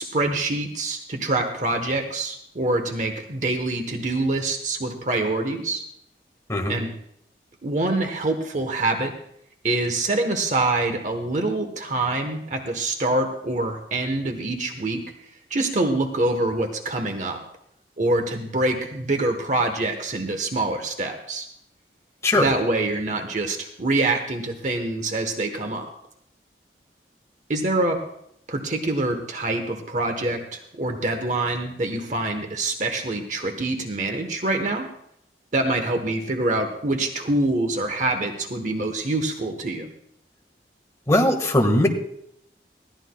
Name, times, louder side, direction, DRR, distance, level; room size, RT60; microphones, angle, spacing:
voice 1, 0.0-5.8 6.7-6.9 7.6-9.1 9.6-15.0 15.5-17.4 18.0-21.5 22.4-25.9 27.5-28.0 28.5-34.9 35.5-39.9, right 2 dB, 45° right, 5 dB, 1.0 m, -25 dB
voice 2, 41.1-41.9, left 1 dB, 15° left, 2 dB, 1.5 m, -19 dB
20.5 x 15.0 x 2.2 m, 0.74 s
head